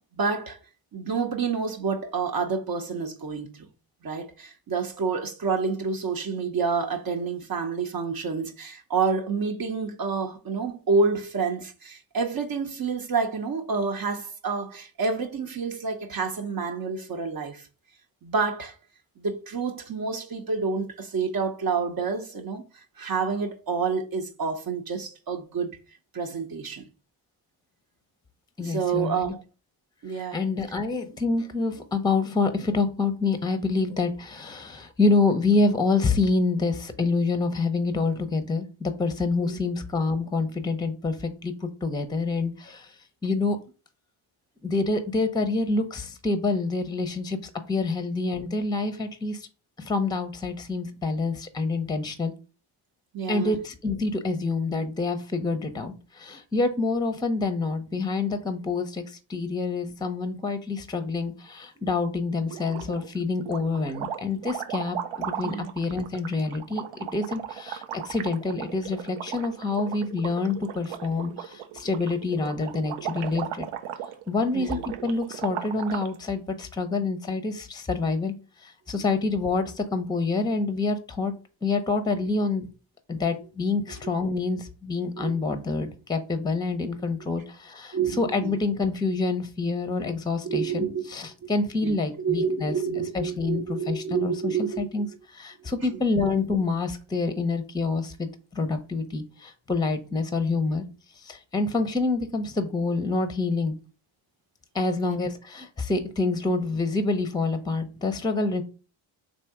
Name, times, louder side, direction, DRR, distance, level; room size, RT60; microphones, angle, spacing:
voice 1, 0.1-0.6 0.9-3.7 4.0-17.7 18.2-18.7 19.2-25.7 26.1-26.8 28.6-29.4 30.0-30.4 39.4-39.6 53.1-53.6 65.4-65.7 74.5-74.8 85.2-85.4 87.9-88.6 90.4-91.1 91.4-91.5 91.8-94.9 105.0-105.2, right 5 dB, 45° right, 0.7 m, -28 dB
voice 2, 28.6-29.3 30.1-43.6 44.6-49.5 49.8-52.3 53.3-66.8 67.1-73.7 74.3-81.3 81.6-82.7 83.1-92.7 93.1-100.8 101.2-103.7 104.7-108.6, left 3 dB, 10° left, 0.6 m, -27 dB
sound 1, 62.5-63.1 63.4-76.1, right 10 dB, 85° right, 0.6 m, -37 dB
3.4 x 2.7 x 4.6 m
cardioid pair, 55°, 49 cm